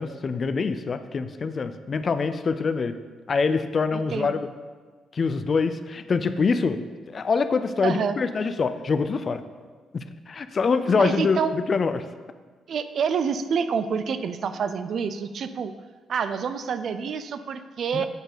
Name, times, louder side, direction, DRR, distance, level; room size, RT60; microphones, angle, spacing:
voice 1, 0.0-3.0 3.3-4.5 5.1-6.8 7.1-9.4 9.9-12.0 17.9-18.1, left 4 dB, 40° left, 11 dB, 0.4 m, -25 dB
voice 2, 3.9-4.3 7.8-8.2 10.9-11.5 12.7-15.7 16.1-18.1, right 6 dB, 60° right, 11 dB, 0.4 m, -27 dB
8.0 x 4.3 x 5.1 m, 1.5 s
cardioid pair, 90°, 0 cm